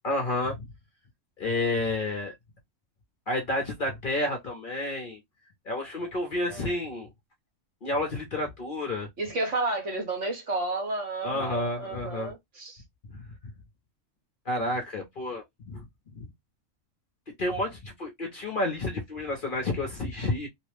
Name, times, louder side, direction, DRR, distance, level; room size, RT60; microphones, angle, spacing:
voice 1, 0.0-0.6 1.4-2.3 3.3-5.2 5.7-7.1 7.8-9.1 11.2-12.3 14.5-15.9 16.2-16.3 17.4-20.5, left 2 dB, 50° left, 0.8 m, -30 dB
voice 2, 9.2-12.8, right 2 dB, 65° right, 1.6 m, -31 dB
3.1 x 2.1 x 3.2 m
omnidirectional pair, 1.3 m